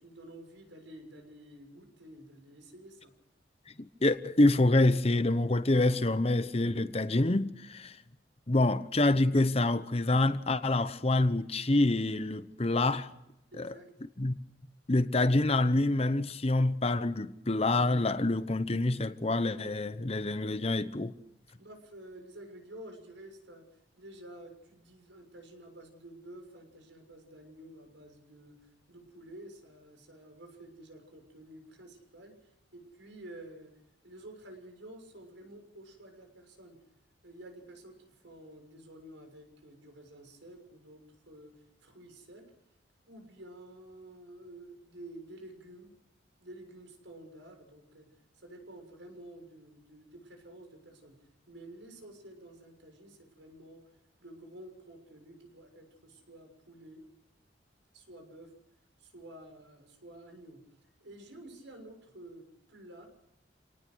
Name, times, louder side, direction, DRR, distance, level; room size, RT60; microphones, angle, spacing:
voice 1, 0.0-3.1 13.5-13.9 21.6-23.6 24.0-33.7 34.0-36.8 37.2-42.4 43.1-45.9 46.4-48.1 48.4-53.8 54.2-57.0 57.9-58.5 59.0-60.6 61.0-63.1, right 1 dB, 80° right, 6.7 m, -51 dB
voice 2, 4.0-8.0 8.5-13.1 13.6-13.7 14.2-14.4 14.9-21.1, left 2 dB, 35° left, 0.9 m, -26 dB
28.5 x 18.5 x 6.3 m
head